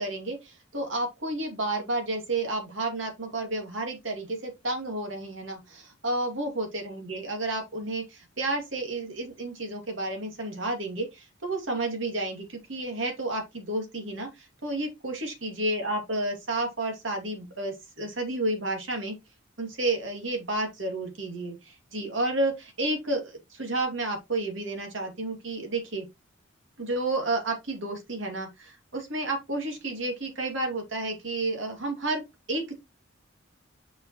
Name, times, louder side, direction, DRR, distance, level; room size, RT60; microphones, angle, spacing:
voice 1, 0.0-19.2 19.6-26.0 26.8-32.2 32.5-32.8, right 2 dB, 70° right, 2.5 m, -31 dB
6.8 x 5.5 x 3.1 m
head